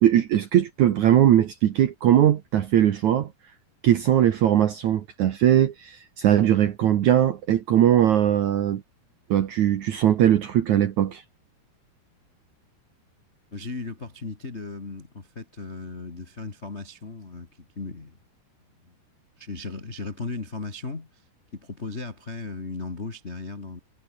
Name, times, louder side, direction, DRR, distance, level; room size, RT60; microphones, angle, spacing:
voice 1, 0.0-3.3 3.8-8.8 9.3-11.2, right 11 dB, 65° right, 2.0 m, -20 dB
voice 2, 13.5-18.2 18.9-19.0 19.4-21.2 21.5-23.8, left 3 dB, 35° left, 1.0 m, -36 dB
omnidirectional pair, 4.8 m